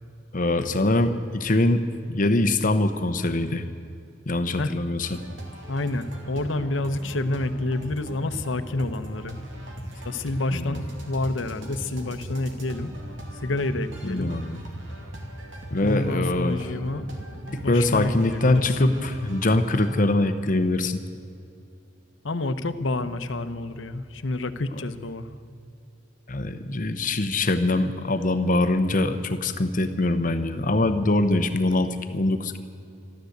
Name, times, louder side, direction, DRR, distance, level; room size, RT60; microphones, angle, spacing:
voice 1, 0.3-3.6 4.3-5.2 10.5-10.8 14.0-14.6 15.7-16.6 17.5-21.0 26.3-32.6, left 2 dB, 45° left, 9 dB, 0.8 m, -23 dB
sound 1, 5.0-20.0, right 1 dB, 80° right, 2.5 m, -39 dB
voice 2, 5.7-9.4 9.8-12.9 13.4-14.3 15.8-17.0 17.6-18.6 22.2-25.3, left 2 dB, 85° left, 11 dB, 0.9 m, -28 dB
13.5 x 13.0 x 8.0 m, 2.5 s
head